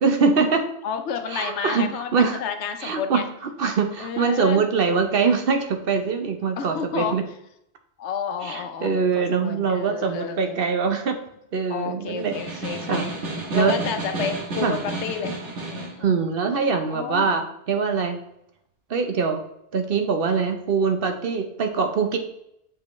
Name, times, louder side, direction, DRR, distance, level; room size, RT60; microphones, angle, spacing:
voice 1, 0.0-0.7 1.3-2.4 2.8-7.2 8.4-11.2 11.5-12.6 12.9-13.1 13.5-13.7 14.6-14.8 16.0-18.2 18.9-19.4 19.7-22.2, right 5 dB, 55° right, 6 dB, 0.9 m, -23 dB
voice 2, 0.8-3.3 4.0-4.6 6.6-7.2 8.0-10.6 11.7-13.1 13.5-16.2 16.9-17.4, left 7 dB, 75° left, 8 dB, 0.9 m, -31 dB
Snare drum, 12.2-16.0, right 2 dB, 90° right, 1.5 m, -31 dB
6.8 x 5.3 x 3.0 m, 0.78 s
omnidirectional pair, 1.2 m